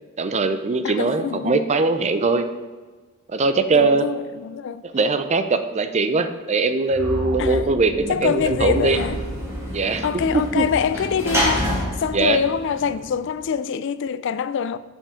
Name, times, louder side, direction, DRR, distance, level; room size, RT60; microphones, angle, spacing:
voice 1, 0.2-2.5 3.3-4.1 4.8-9.0 9.7-10.1 10.3-10.7 12.1-12.4, right 3 dB, 35° right, 0.5 m, -21 dB
voice 2, 0.8-1.6 3.7-4.8 7.4-7.7 8.1-9.2 10.0-14.8, left 6 dB, 60° left, 0.4 m, -25 dB
sound 1, 6.9-13.0, right 1 dB, 65° right, 2.0 m, -33 dB
Sliding door / Slam, 8.0-13.4, equal, 15° right, 2.4 m, -29 dB
7.2 x 5.7 x 5.0 m
head